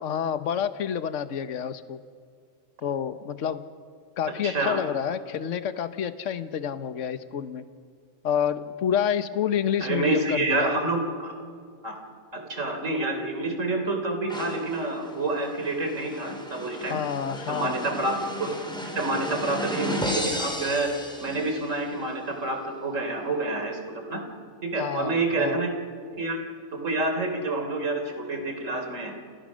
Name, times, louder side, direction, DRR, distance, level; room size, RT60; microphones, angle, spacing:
voice 1, 0.0-2.0 2.8-3.7 4.2-7.6 8.2-10.7 16.9-17.8 24.8-25.6, left 8 dB, 60° left, 11 dB, 1.3 m, -28 dB
voice 2, 4.4-4.8 9.8-11.3 11.8-12.0 12.3-17.0 17.5-18.5 19.0-20.9 21.2-24.2 24.6-25.7 26.1-26.4 26.7-29.1, right 2 dB, 60° right, 5 dB, 3.8 m, -28 dB
sound 1, 14.3-21.9, equal, 5° left, 3.8 m, -34 dB
30.0 x 28.5 x 6.3 m, 2.1 s
omnidirectional pair, 1.5 m